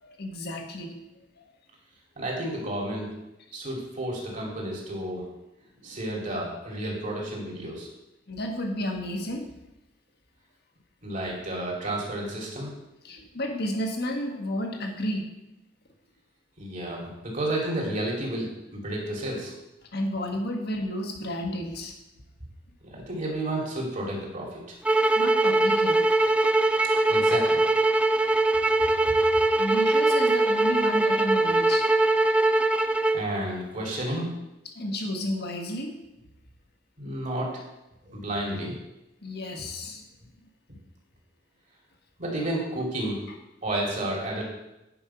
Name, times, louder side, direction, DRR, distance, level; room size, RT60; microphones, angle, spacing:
voice 1, 0.0-1.0 1.4-1.5 8.3-9.5 13.0-15.2 19.9-22.0 25.1-26.0 29.6-31.9 34.6-36.0 39.2-40.0, left 1 dB, 60° left, 3 dB, 1.4 m, -32 dB
voice 2, 2.2-3.1 3.5-5.3 5.8-7.9 11.0-12.8 13.1-13.2 16.6-19.5 22.8-24.6 27.1-27.6 33.1-34.3 37.0-37.5 38.0-38.8 42.2-43.2 43.6-44.4, right 1 dB, 40° right, -2 dB, 2.8 m, -31 dB
sound 1, 24.8-33.2, right 2 dB, 5° right, 0.4 m, -22 dB
10.0 x 5.4 x 5.7 m, 0.93 s
head